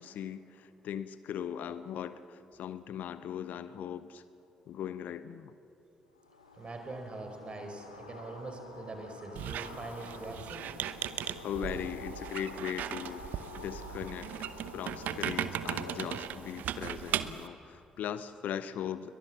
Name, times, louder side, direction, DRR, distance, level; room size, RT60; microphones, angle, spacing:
voice 1, 0.0-4.2 4.7-5.5 11.4-13.3 13.6-19.1, left 9 dB, 55° left, 14 dB, 0.8 m, -39 dB
sound 1, 6.2-16.3, left 3 dB, 85° left, 2.4 m, -48 dB
voice 2, 6.6-10.7, right 2 dB, 35° right, 5 dB, 4.7 m, -43 dB
Squeak, 9.4-17.5, right 11 dB, 60° right, 0.9 m, -38 dB
29.5 x 22.5 x 7.5 m, 3.0 s
figure-of-eight pair, 40°, 3 cm